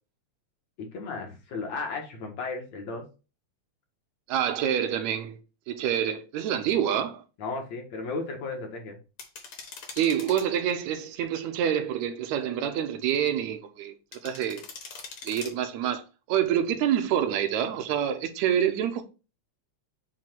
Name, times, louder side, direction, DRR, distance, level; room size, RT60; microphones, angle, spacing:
voice 1, 0.9-3.0 7.4-9.0, left 3 dB, 65° left, 2.8 m, -34 dB
voice 2, 4.3-5.4 5.7-7.2 10.0-13.9 14.2-14.6 15.2-19.0, right 9 dB, 80° right, 2.0 m, -27 dB
sound 1, 9.2-10.5 14.1-15.5, left 4 dB, 50° left, 2.0 m, -42 dB
7.5 x 2.8 x 5.9 m
omnidirectional pair, 3.3 m